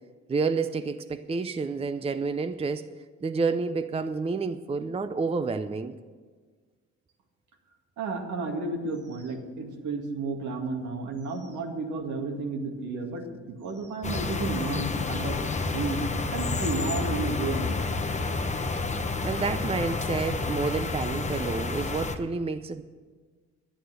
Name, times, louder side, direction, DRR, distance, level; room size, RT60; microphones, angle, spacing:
voice 1, 0.3-2.9 3.2-6.0 19.2-22.8, right 4 dB, 20° right, 10 dB, 0.5 m, -29 dB
voice 2, 8.0-15.4 15.7-16.0 16.3-17.9, right 3 dB, 75° right, 2 dB, 2.2 m, -32 dB
sound 1, 14.0-22.1, left 3 dB, 25° left, 0.9 m, -30 dB
11.5 x 9.2 x 7.7 m, 1.5 s
cardioid pair, 90°, 30 cm